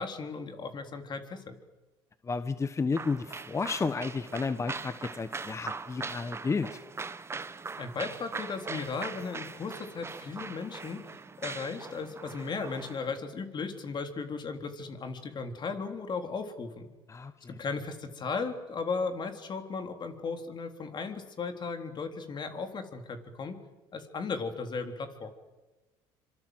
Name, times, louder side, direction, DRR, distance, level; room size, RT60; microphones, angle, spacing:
voice 1, 0.0-1.6 7.8-11.2 11.4-16.9 17.5-23.6 23.9-25.3, left 4 dB, 40° left, 6 dB, 3.6 m, -36 dB
voice 2, 2.2-6.8 17.1-17.6, left 4 dB, 25° left, 11 dB, 1.3 m, -32 dB
sound 1, 2.9-13.2, right 4 dB, 25° right, 1.1 m, -41 dB
25.5 x 25.0 x 8.0 m, 1.2 s
supercardioid pair, 85°, 11 cm